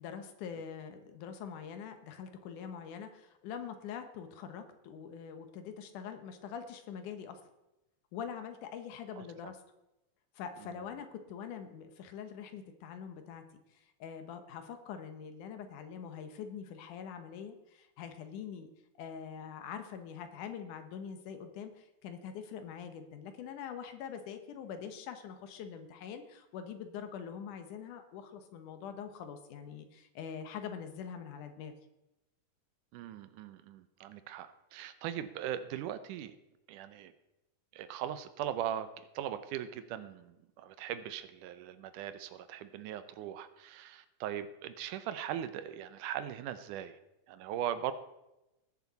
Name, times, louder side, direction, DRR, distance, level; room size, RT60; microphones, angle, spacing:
voice 1, 0.0-7.4 8.1-9.6 10.4-13.4 13.7-18.7 19.0-31.7, left 7 dB, 80° left, 8 dB, 2.6 m, -44 dB
voice 2, 9.2-9.5 10.6-10.8 32.9-36.4 36.7-37.1 37.7-38.9 39.2-47.0 47.3-47.9, right 10 dB, 85° right, 11 dB, 2.3 m, -39 dB
19.5 x 7.1 x 4.1 m, 0.95 s
omnidirectional pair, 3.5 m